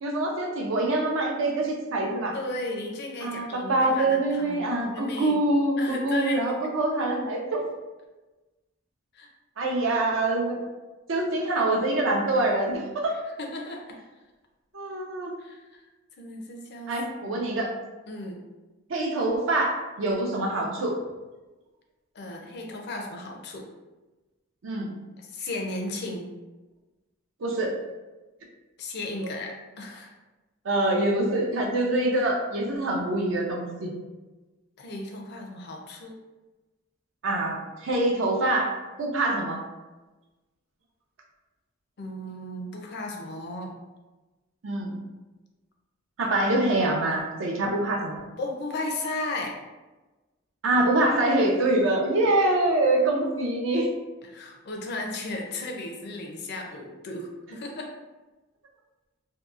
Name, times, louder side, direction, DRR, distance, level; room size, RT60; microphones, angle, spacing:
voice 1, 0.0-2.4 3.2-7.6 9.6-10.6 11.1-13.2 14.7-15.3 16.9-17.7 18.9-21.0 24.6-24.9 27.4-27.7 30.6-33.9 37.2-38.7 39.0-39.6 44.6-45.0 46.2-48.2 50.6-53.9, right 2 dB, 75° right, 0 dB, 0.5 m, -25 dB
voice 2, 2.3-5.4 5.8-6.6 9.1-9.3 13.4-13.8 15.4-15.8 16.2-16.9 17.2-17.4 18.1-18.4 22.1-23.7 25.3-26.3 28.8-30.1 34.8-36.2 42.0-43.7 48.4-49.6 54.3-57.9, left 2 dB, 55° left, 1 dB, 0.5 m, -35 dB
2.8 x 2.2 x 2.3 m, 1.2 s
head